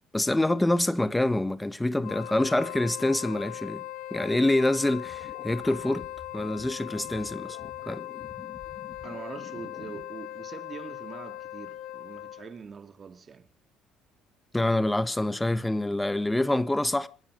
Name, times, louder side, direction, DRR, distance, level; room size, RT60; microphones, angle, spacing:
voice 1, 0.1-3.8 4.1-6.1 6.3-7.6 7.8-8.0 14.5-17.1, left 1 dB, 10° left, 1.4 m, -26 dB
Wind instrument woodwind instrument, 2.0-12.6, left 14 dB, 70° left, 1.5 m, -39 dB
sound 1, 5.0-10.0, left 6 dB, 40° left, 2.1 m, -49 dB
voice 2, 9.0-13.5, right 6 dB, 40° right, 2.1 m, -43 dB
27.5 x 10.5 x 4.8 m
supercardioid pair, 70°, 0 cm